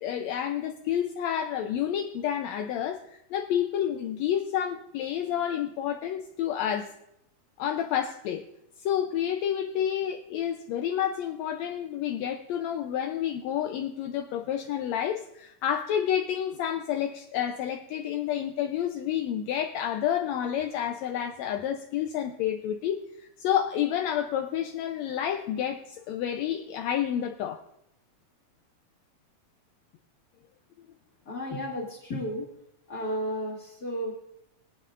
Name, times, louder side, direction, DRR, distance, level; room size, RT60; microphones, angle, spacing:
voice 1, 0.0-3.0 3.3-6.9 7.6-8.4 8.8-27.6, left 10 dB, 75° left, 5 dB, 1.8 m, -29 dB
voice 2, 31.3-32.5 32.9-34.1, equal, 35° left, -6 dB, 2.6 m, -33 dB
23.5 x 8.8 x 2.5 m, 0.81 s
omnidirectional pair, 3.3 m